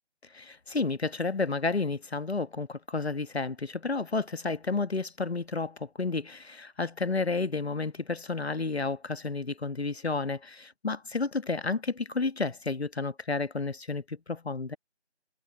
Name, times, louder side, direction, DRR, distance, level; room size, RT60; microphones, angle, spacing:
voice 1, 0.3-14.8, left 3 dB, 65° left, 1.4 m, -31 dB
figure-of-eight pair, 175°, 35 cm